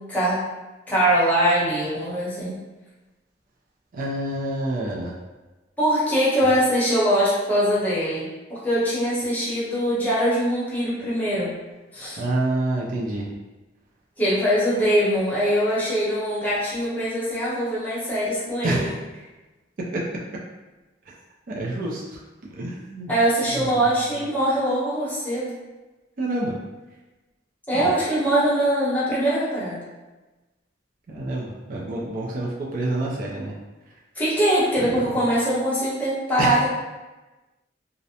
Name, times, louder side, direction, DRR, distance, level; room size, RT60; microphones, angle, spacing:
voice 1, 0.1-0.4 0.9-2.6 5.8-11.5 11.9-12.2 14.2-18.9 23.1-25.5 27.7-29.8 34.2-36.7, equal, 10° left, -9 dB, 0.8 m, -22 dB
voice 2, 3.9-5.1 12.2-13.3 18.6-19.0 21.1-21.2 21.5-22.2 22.5-23.1 23.6-23.8 26.2-26.5 27.7-27.8 31.1-33.5 34.8-35.1 36.4-36.6, right 2 dB, 50° right, -4 dB, 0.4 m, -27 dB
2.4 x 2.0 x 2.7 m, 1.2 s
head